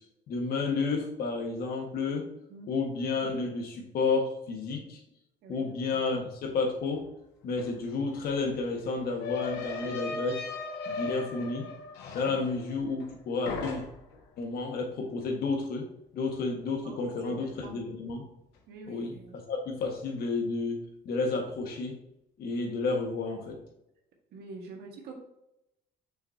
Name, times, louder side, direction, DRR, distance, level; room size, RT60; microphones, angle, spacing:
voice 1, 0.3-2.2 2.7-5.0 5.5-7.1 7.4-10.4 10.9-11.7 12.1-13.8 14.4-15.9 16.1-18.2 18.9-19.1 19.5-20.8 21.1-22.0 22.4-23.6, left 4 dB, 65° left, 2 dB, 1.6 m, -31 dB
voice 2, 5.4-6.1 12.3-12.4 16.8-17.8 18.7-19.4 24.3-25.2, right 3 dB, 75° right, 1 dB, 1.6 m, -46 dB
sound 1, 7.6-7.7 7.9-13.2 13.5-14.2, left 4 dB, 85° left, 1.4 m, -38 dB
6.5 x 6.0 x 2.8 m, 0.83 s
cardioid pair, 110°, 17 cm